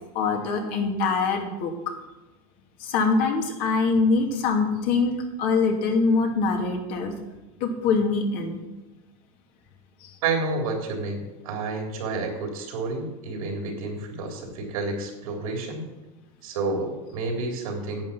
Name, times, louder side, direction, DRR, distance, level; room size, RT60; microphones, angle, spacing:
voice 1, 0.1-1.7 2.8-7.1 7.6-8.6 10.0-10.1, left 4 dB, 55° left, 3 dB, 2.6 m, -24 dB
voice 2, 10.2-15.9 16.4-18.1, right 3 dB, 90° right, 2 dB, 3.6 m, -30 dB
10.5 x 8.3 x 7.1 m, 1.1 s
supercardioid pair, 135°, 18 cm